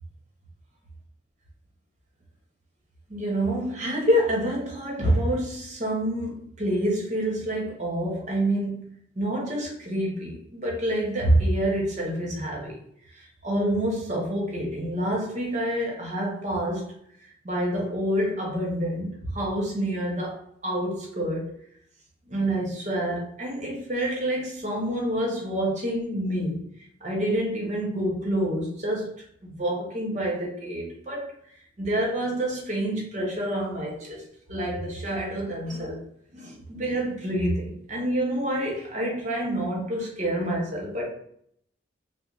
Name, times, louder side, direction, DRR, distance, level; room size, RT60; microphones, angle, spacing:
voice 1, 3.1-8.8 9.2-12.7 13.4-16.9 17.4-20.4 20.6-21.5 22.3-26.6 27.0-29.1 29.4-31.2 31.8-34.2 34.5-36.0 36.3-41.1, right 1 dB, 40° right, -1 dB, 0.9 m, -27 dB
3.9 x 2.1 x 3.0 m, 0.67 s
head